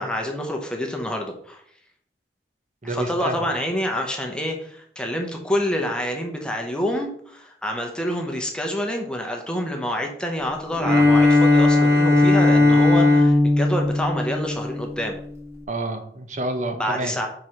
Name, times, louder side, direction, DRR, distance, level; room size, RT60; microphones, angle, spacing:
voice 1, 0.0-1.6 2.8-15.2 16.8-17.3, equal, 5° left, 1 dB, 0.8 m, -27 dB
voice 2, 2.8-3.4 15.7-17.1, right 2 dB, 45° right, 6 dB, 0.9 m, -28 dB
Bowed string instrument, 10.8-15.1, left 2 dB, 15° right, 1.1 m, -17 dB
4.9 x 4.7 x 5.8 m, 0.64 s
head